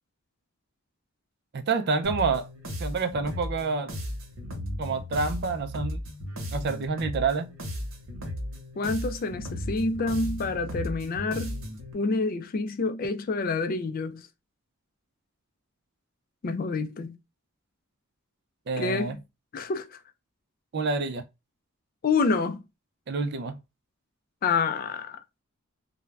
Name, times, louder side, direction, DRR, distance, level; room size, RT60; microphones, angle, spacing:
voice 1, 1.5-2.5 2.8-3.9 4.8-6.0 6.5-7.5 18.7-19.2 20.7-21.3 23.1-23.6, right 4 dB, 50° right, 0.4 m, -28 dB
sound 1, 2.0-11.9, left 1 dB, 70° right, 0.9 m, -35 dB
voice 2, 8.8-11.6 11.9-14.3 16.4-17.2 18.8-19.2 19.5-20.0 22.0-22.6 24.4-25.2, left 4 dB, 45° left, 0.3 m, -28 dB
2.4 x 2.1 x 3.2 m
head